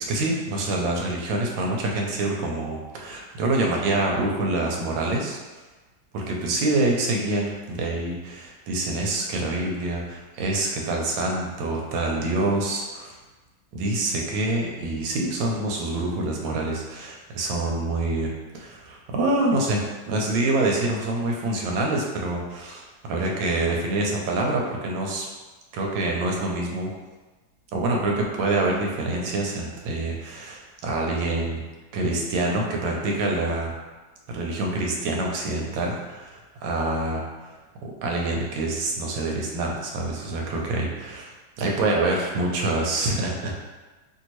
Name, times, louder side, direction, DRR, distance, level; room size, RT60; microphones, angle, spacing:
voice 1, 0.0-5.4 6.1-13.1 13.7-25.3 25.7-26.9 27.7-31.6 31.9-33.7 34.3-37.5 37.8-41.3 41.6-43.5, right 2 dB, 80° right, 0 dB, 1.4 m, -26 dB
3.1 x 2.7 x 2.9 m, 1.2 s
omnidirectional pair, 2.1 m